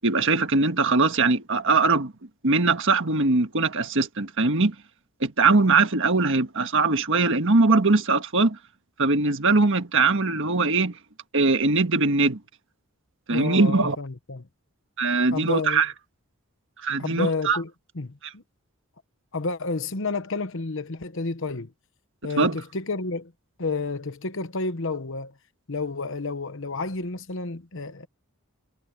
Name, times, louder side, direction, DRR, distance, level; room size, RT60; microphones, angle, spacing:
voice 1, 0.0-2.1 2.4-4.8 5.2-8.6 9.0-10.9 11.3-12.4 13.3-14.0 15.0-15.9 16.8-17.6 22.4-22.6, right 3 dB, 60° right, 1.6 m, -21 dB
voice 2, 13.3-14.5 15.3-15.8 17.0-18.4 19.3-21.7 22.2-23.3 23.6-25.3 25.7-28.1, left 3 dB, 60° left, 1.1 m, -30 dB
head